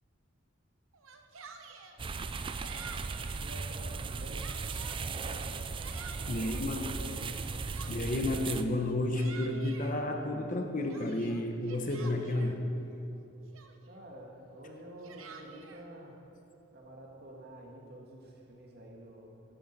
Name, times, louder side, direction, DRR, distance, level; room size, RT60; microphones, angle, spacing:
Yell, 0.9-2.0 2.6-3.4 3.9-5.0 5.5-6.6 7.4-8.3 8.8-9.9 10.5-12.6 13.2-13.3 13.5-14.0 14.8-15.8, right 5 dB, 85° right, 0.9 m, -50 dB
sound 1, 2.0-8.6, right 4 dB, 25° right, 0.4 m, -37 dB
voice 1, 3.2-4.5 4.8-5.8 6.4-7.4 13.9-16.2 16.7-19.5, right 1 dB, 50° right, -1 dB, 1.9 m, -49 dB
voice 2, 6.3-6.8 7.8-12.6, left 1 dB, 40° left, 4 dB, 1.0 m, -31 dB
15.0 x 11.5 x 4.2 m, 2.8 s
head